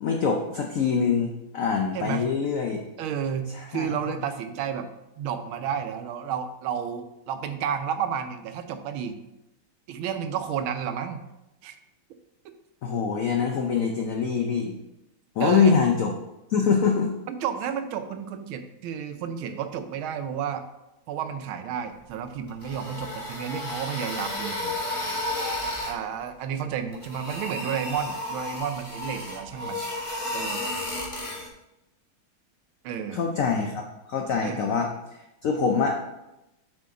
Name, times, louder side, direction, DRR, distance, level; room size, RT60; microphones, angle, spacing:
voice 1, 0.0-2.8 3.5-3.9 12.8-14.7 15.4-16.1 16.5-17.1 33.1-34.9 35.4-36.0, left 6 dB, 85° left, 2 dB, 0.7 m, -24 dB
voice 2, 1.9-2.3 3.0-4.9 5.2-9.2 9.9-11.2 11.6-11.8 15.4-15.8 17.3-20.7 21.1-24.7 25.9-29.8 30.3-30.6 32.8-33.2 34.4-34.7, right 8 dB, 85° right, 8 dB, 1.5 m, -31 dB
sound 1, 22.5-26.0 26.9-31.5, left 1 dB, 20° left, 1.3 m, -32 dB
7.6 x 5.1 x 3.7 m, 0.93 s
omnidirectional pair, 2.2 m